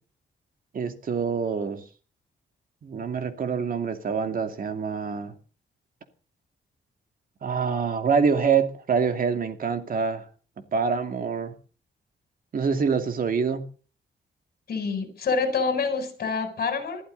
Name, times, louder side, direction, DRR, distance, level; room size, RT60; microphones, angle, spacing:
voice 1, 0.7-1.8 2.8-5.3 7.4-10.2 10.7-11.5 12.5-13.6, right 6 dB, 50° right, 2.6 m, -25 dB
voice 2, 14.7-17.0, left 4 dB, 55° left, 7.8 m, -27 dB
21.5 x 14.5 x 4.1 m
wide cardioid pair, 155°, 18 cm